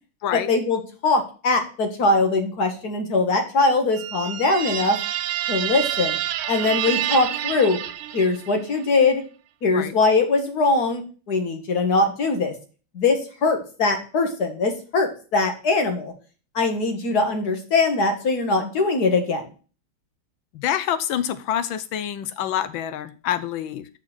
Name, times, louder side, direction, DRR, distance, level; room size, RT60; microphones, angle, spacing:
voice 1, 0.3-5.0 5.5-6.2 6.5-7.8 8.1-9.2 9.6-11.0 11.3-12.5 12.9-16.1 16.6-19.5, left 3 dB, 50° left, 5 dB, 1.9 m, -21 dB
sound 1, 3.9-8.7, right 12 dB, 85° right, 1.5 m, -28 dB
voice 2, 20.5-23.9, left 10 dB, 75° left, 14 dB, 1.4 m, -27 dB
6.7 x 5.6 x 6.0 m, 0.37 s
omnidirectional pair, 2.3 m